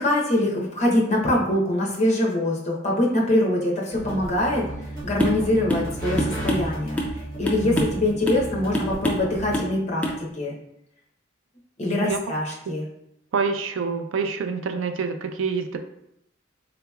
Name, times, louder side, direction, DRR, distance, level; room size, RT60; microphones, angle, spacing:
voice 1, 0.0-4.7 5.0-7.0 7.4-10.0 10.3-10.6 11.8-12.9, left 1 dB, 35° left, -2 dB, 0.7 m, -23 dB
sound 1, 3.9-9.6, right 1 dB, 45° right, 1.0 m, -34 dB
sound 2, 5.2-5.4 5.7-5.9 6.2-7.2 7.5-8.0 8.3-8.5 8.7-9.3 9.5-9.7 10.0-10.2, equal, 5° left, 0.4 m, -26 dB
voice 2, 11.9-12.2 13.3-15.8, right 5 dB, 75° right, 7 dB, 0.4 m, -27 dB
3.9 x 2.8 x 2.3 m, 0.78 s
head